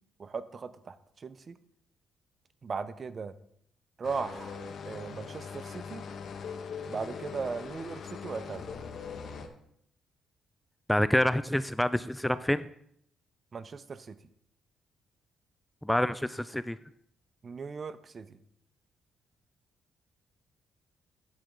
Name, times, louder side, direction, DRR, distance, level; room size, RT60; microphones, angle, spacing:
voice 1, 0.2-1.6 2.6-3.3 4.0-4.6 4.9-6.0 6.9-8.7 13.5-14.2 17.4-18.4, right 5 dB, 40° right, 14 dB, 0.6 m, -38 dB
sound 1, 4.0-9.5, left 6 dB, 60° left, 1.1 m, -41 dB
voice 2, 10.9-12.7 15.8-16.8, left 1 dB, 5° left, 14 dB, 0.3 m, -27 dB
9.1 x 8.5 x 3.8 m, 0.71 s
cardioid pair, 90°, 0 cm